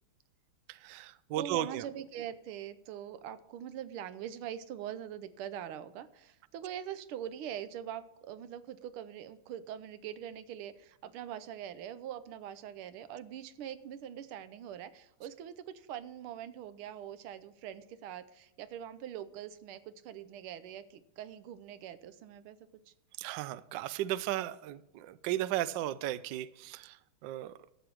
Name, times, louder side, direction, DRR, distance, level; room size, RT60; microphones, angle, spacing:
voice 1, 0.7-1.9 23.2-27.6, right 13 dB, 75° right, 1.1 m, -35 dB
voice 2, 1.4-22.6 22.9-23.0, right 10 dB, 90° right, 1.6 m, -43 dB
12.5 x 8.2 x 4.6 m
omnidirectional pair, 2.3 m